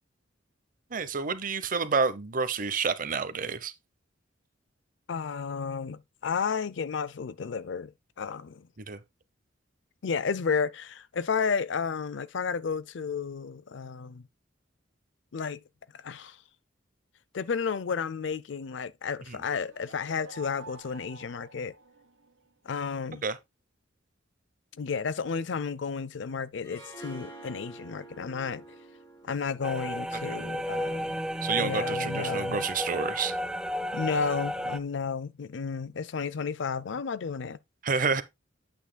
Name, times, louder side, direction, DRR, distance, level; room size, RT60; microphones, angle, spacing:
voice 1, 0.9-3.7 8.9-9.0 19.3-19.4 23.2-23.4 30.3-30.4 31.4-33.3 37.8-38.2, right 5 dB, 45° right, 0.8 m, -29 dB
voice 2, 5.1-8.7 10.0-14.2 15.3-15.6 15.9-16.4 17.3-21.7 22.7-23.2 24.8-28.6 29.2-31.2 31.5-32.6 33.9-37.6, left 5 dB, 70° left, 0.5 m, -32 dB
sound 1, 19.5-22.4, right 2 dB, 85° right, 1.3 m, -49 dB
Harp, 26.6-31.7, right 2 dB, 20° left, 2.8 m, -49 dB
sound 2, 29.6-34.8, equal, 5° right, 0.4 m, -32 dB
8.7 x 8.1 x 2.2 m
head